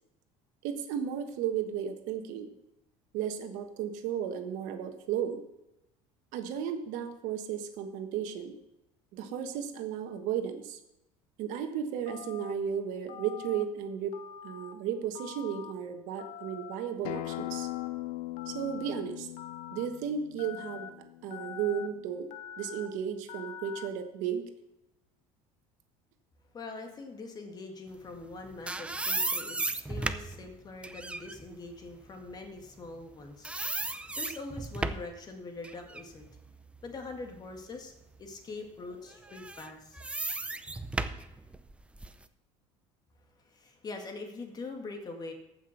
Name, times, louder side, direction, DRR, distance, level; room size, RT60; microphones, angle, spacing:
voice 1, 0.6-2.5 3.1-5.4 6.3-8.6 9.1-10.8 11.4-14.2 14.4-17.7 18.5-19.3 19.7-20.9 21.2-22.3 22.6-24.4, right 8 dB, 70° right, 7 dB, 1.4 m, -34 dB
Telephone, 12.1-12.5 13.1-13.6 14.1-14.7 15.2-15.7 16.2-16.8 17.3-17.9 18.4-18.9 19.4-19.9 20.4-20.9 21.3-21.9 22.3-22.9 23.3-23.9, left 10 dB, 60° left, 1.1 m, -44 dB
Acoustic guitar, 17.0-22.2, left 18 dB, 85° left, 0.6 m, -40 dB
voice 2, 26.5-36.3 36.8-37.9 38.2-40.0 43.4-45.3, left 3 dB, 30° left, 4 dB, 2.0 m, -43 dB
sound 1, 28.2-33.1 33.4-35.2 35.6-37.6 38.1-38.2 39.2-42.2, right 2 dB, 10° right, 0.6 m, -35 dB
14.5 x 6.1 x 5.8 m, 0.89 s
supercardioid pair, 120°, 14 cm